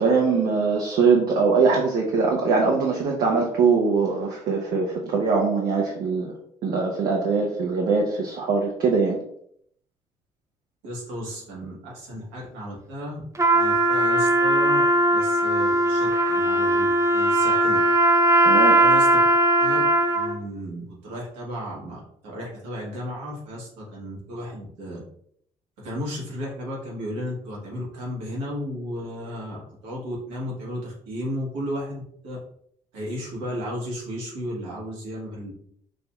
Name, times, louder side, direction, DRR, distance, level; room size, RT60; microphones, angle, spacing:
voice 1, 0.0-6.3 6.6-9.2 18.4-18.8, right 4 dB, 65° right, -2 dB, 0.8 m, -22 dB
voice 2, 10.8-13.2 13.5-14.8 15.1-17.8 18.8-19.3 19.6-19.8 20.1-25.0 25.8-32.4 32.9-35.5, equal, 85° right, -5 dB, 1.5 m, -34 dB
Trumpet, 13.4-20.4, right 1 dB, 20° right, 0.6 m, -19 dB
5.2 x 2.9 x 2.3 m, 0.68 s
hypercardioid pair, 55°, 17 cm